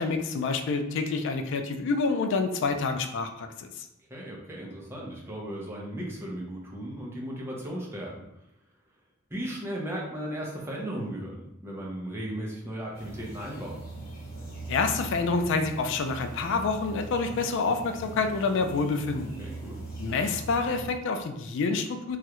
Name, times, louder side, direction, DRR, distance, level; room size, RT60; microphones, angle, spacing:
voice 1, 0.0-3.9 14.7-19.3 20.0-22.2, left 4 dB, 60° left, 7 dB, 0.3 m, -28 dB
voice 2, 4.1-8.2 9.3-13.8 19.4-19.8, right 1 dB, 10° right, -3 dB, 0.6 m, -36 dB
sound 1, 12.9-20.9, right 2 dB, 45° left, 0.8 m, -40 dB
3.1 x 2.4 x 2.9 m, 0.86 s
head